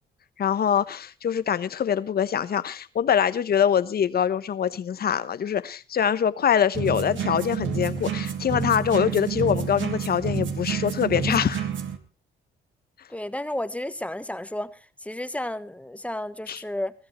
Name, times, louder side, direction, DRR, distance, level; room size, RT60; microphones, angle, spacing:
voice 1, 0.4-11.7 16.5-16.6, left 8 dB, 50° left, 1.1 m, -24 dB
sound 1, 6.7-12.0, right 7 dB, 70° right, 2.2 m, -29 dB
voice 2, 13.1-16.9, left 1 dB, 5° left, 1.1 m, -32 dB
20.5 x 14.5 x 3.1 m
cardioid pair, 90°, 20 cm